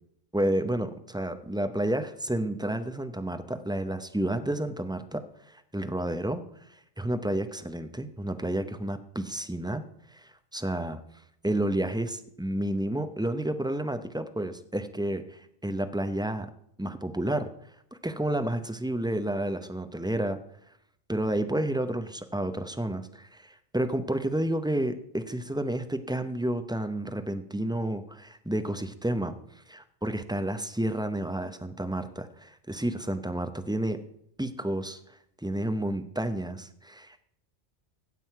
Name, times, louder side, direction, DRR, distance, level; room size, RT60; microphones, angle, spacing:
voice 1, 0.3-6.4 6.7-9.8 10.1-11.0 11.4-16.5 16.8-17.5 18.0-20.4 21.1-34.0 34.4-37.2, right 1 dB, 5° right, 8 dB, 0.5 m, -30 dB
15.5 x 7.6 x 4.6 m, 0.73 s
omnidirectional pair, 1.2 m